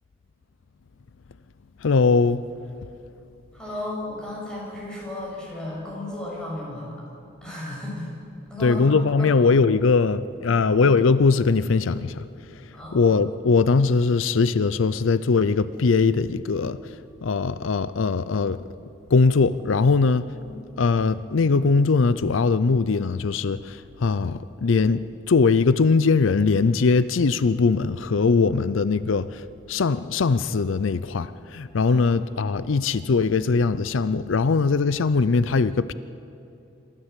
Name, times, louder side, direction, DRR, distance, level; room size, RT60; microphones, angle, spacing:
voice 1, 1.8-2.4 8.6-12.2 12.9-16.8 17.2-18.6 19.1-20.3 20.8-29.4 29.7-35.9, left 4 dB, 85° left, 0.5 m, -21 dB
voice 2, 3.5-6.9 7.4-8.1 8.5-9.4 10.4-10.6 12.7-13.1 20.4-20.6 31.8-32.1, left 1 dB, 5° left, 6.9 m, -34 dB
26.5 x 13.5 x 8.2 m
head